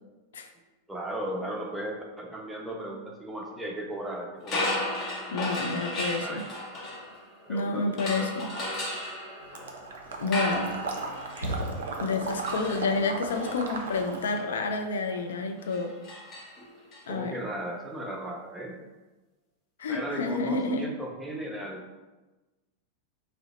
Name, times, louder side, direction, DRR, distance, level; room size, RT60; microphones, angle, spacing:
voice 1, 0.9-4.8 6.2-6.4 7.5-8.3 17.1-18.8 19.9-21.9, right 1 dB, 5° right, -1 dB, 0.5 m, -36 dB
sound 1, 4.4-7.5 8.0-17.0, left 1 dB, 30° left, 0.7 m, -35 dB
voice 2, 5.3-6.4 7.5-8.5 10.2-10.7 12.0-15.9 17.1-17.4 19.8-20.9, left 3 dB, 65° left, 5 dB, 0.3 m, -29 dB
Water / Liquid, 9.5-14.4, right 3 dB, 60° right, 0.4 m, -36 dB
sound 2, 11.3-12.4, right 1 dB, 85° left, 0.8 m, -35 dB
2.7 x 2.0 x 4.0 m, 1.2 s
figure-of-eight pair, 90°, 0 cm